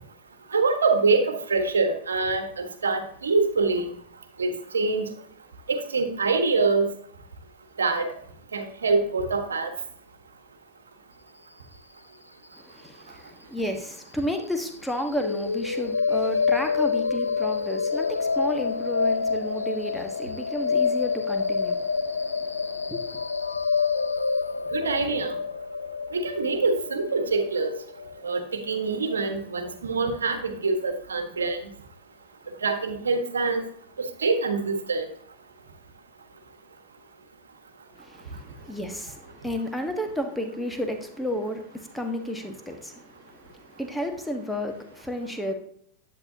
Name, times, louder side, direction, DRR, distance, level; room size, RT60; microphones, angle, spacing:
voice 1, 0.5-3.8 4.4-5.1 5.7-6.9 7.8-8.1 8.5-9.7 24.7-25.3 26.1-27.7 28.2-31.6 32.6-33.6 34.2-35.1, right 3 dB, 70° right, 7 dB, 1.4 m, -25 dB
voice 2, 12.5-23.2 37.9-45.5, equal, 5° left, 4 dB, 1.4 m, -32 dB
sound 1, 15.1-29.1, left 5 dB, 80° left, 0.4 m, -27 dB
10.5 x 8.6 x 2.8 m, 0.65 s
figure-of-eight pair, 90°, 0 cm